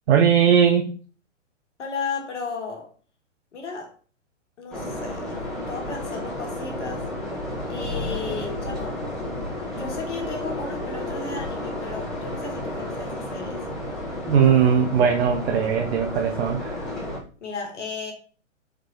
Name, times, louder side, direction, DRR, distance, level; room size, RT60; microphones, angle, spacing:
voice 1, 0.1-0.9 14.2-16.9, right 7 dB, 55° right, 0.5 m, -19 dB
voice 2, 1.8-2.9 3.5-3.9 4.6-5.4 5.7-7.0 7.7-9.0 9.7-13.7 17.4-18.1, left 4 dB, 65° left, 1.2 m, -34 dB
sound 1, 4.7-17.2, left 1 dB, ahead, 1.2 m, -32 dB
4.0 x 3.0 x 2.7 m
figure-of-eight pair, 115°, 38 cm